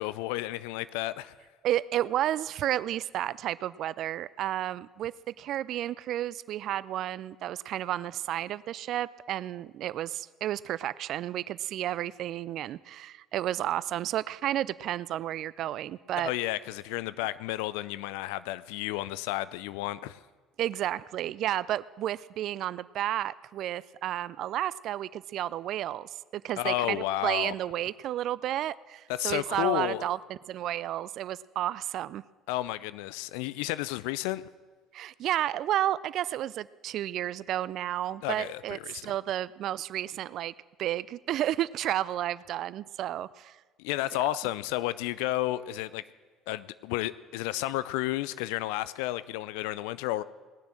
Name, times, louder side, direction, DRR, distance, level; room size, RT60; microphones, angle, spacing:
voice 1, 0.0-1.3 16.2-20.2 26.6-27.5 29.2-30.1 32.5-34.4 38.2-39.1 43.8-46.0 46.5-50.2, left 16 dB, 70° left, 17 dB, 0.4 m, -32 dB
voice 2, 1.6-16.3 20.6-32.2 34.9-40.5 40.8-43.6, right 12 dB, 60° right, 19 dB, 0.4 m, -32 dB
19.0 x 6.9 x 7.7 m, 1.4 s
hypercardioid pair, 55°, 0 cm